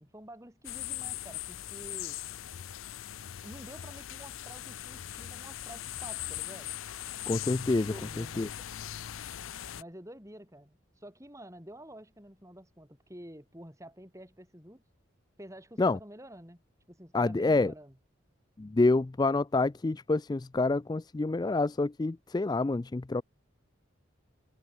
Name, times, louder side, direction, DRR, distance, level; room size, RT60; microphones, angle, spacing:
voice 1, 0.0-2.2 3.4-6.7 7.9-8.5 9.8-14.8 15.4-16.6 16.9-18.0, right 1 dB, 15° right, 5.5 m, -49 dB
sound 1, 0.6-9.8, left 12 dB, 80° left, 0.5 m, -40 dB
voice 2, 7.3-7.9 8.4-8.5 15.8-16.0 17.1-17.7 18.6-23.2, left 3 dB, 20° left, 0.3 m, -27 dB
head